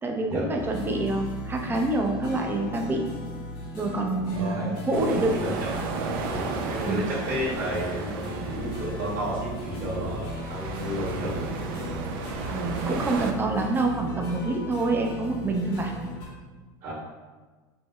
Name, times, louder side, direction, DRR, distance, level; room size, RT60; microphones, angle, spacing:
voice 1, 0.0-3.0 3.7-5.4 6.9-7.0 12.5-15.9, right 2 dB, 15° right, 2 dB, 0.5 m, -27 dB
sound 1, 0.6-16.3, left 1 dB, 75° left, 1.3 m, -37 dB
voice 2, 4.3-4.7 5.1-5.5 6.3-11.5 16.8-16.9, equal, 45° right, -10 dB, 1.5 m, -32 dB
sound 2, 4.9-13.3, right 4 dB, 75° right, 0.4 m, -34 dB
5.3 x 2.0 x 2.2 m, 1.3 s
supercardioid pair, 110°, 12 cm